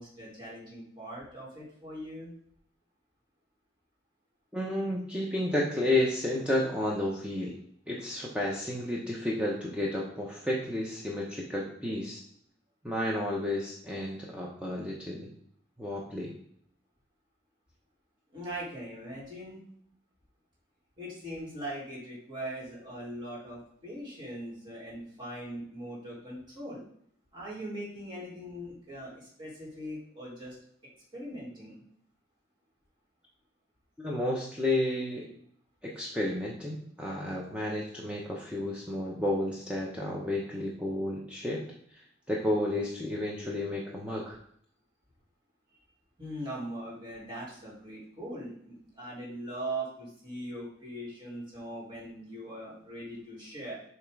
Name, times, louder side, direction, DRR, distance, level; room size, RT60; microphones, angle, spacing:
voice 1, 0.0-2.3 18.3-19.6 21.0-26.8 27.3-30.5 31.1-31.8 45.7-45.9 46.2-53.8, right 1 dB, 25° right, -5 dB, 2.0 m, -40 dB
voice 2, 4.5-7.5 7.9-12.2 12.8-15.3 15.8-16.3 34.0-35.3 35.8-41.6 42.3-44.4, left 1 dB, 5° right, -4 dB, 0.8 m, -31 dB
7.1 x 3.0 x 4.7 m, 0.66 s
head